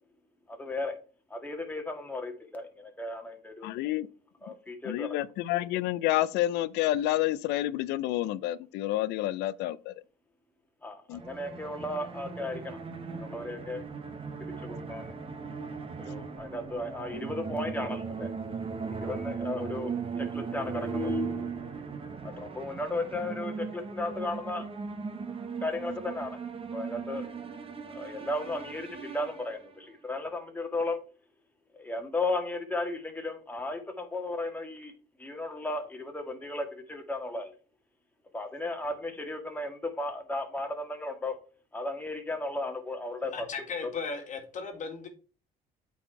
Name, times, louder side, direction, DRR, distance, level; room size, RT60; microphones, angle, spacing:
voice 1, 0.5-1.0 1.3-3.7 4.4-5.2 10.8-12.8 13.1-13.8 14.6-15.1 16.0-18.3 18.8-21.9 22.2-24.7 25.6-26.4 26.7-27.3 27.9-31.0 31.7-34.9 35.2-37.5 38.3-41.4 41.7-43.5 43.8-43.9, left 2 dB, 10° left, 1.8 m, -35 dB
voice 2, 3.6-4.1 4.8-9.9 11.1-11.2, left 14 dB, 90° left, 0.5 m, -29 dB
sound 1, 11.1-29.9, right 5 dB, 35° right, 1.2 m, -38 dB
voice 3, 43.3-45.1, left 5 dB, 45° left, 1.8 m, -36 dB
8.5 x 4.3 x 4.5 m
cardioid pair, 110°, 17 cm